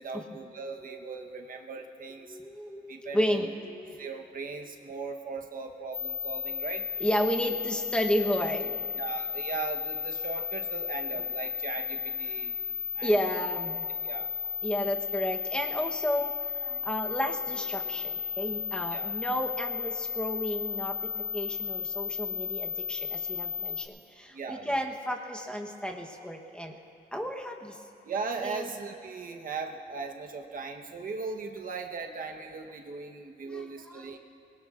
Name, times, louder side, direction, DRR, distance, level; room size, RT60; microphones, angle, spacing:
voice 1, 0.0-2.4 2.9-3.5 4.0-6.9 9.0-12.5 12.9-13.2 14.0-14.3 18.9-19.1 24.3-24.8 28.0-34.2, right 4 dB, 55° right, 3 dB, 1.1 m, -38 dB
voice 2, 2.2-4.1 7.0-8.8 13.0-13.9 14.6-26.8 27.1-27.8 28.4-28.7 33.4-34.2, equal, 5° left, 1 dB, 1.0 m, -32 dB
sound 1, 5.9-23.8, left 7 dB, 40° left, 2.8 m, -34 dB
24.5 x 21.0 x 2.5 m, 2.6 s
wide cardioid pair, 140°, 17 cm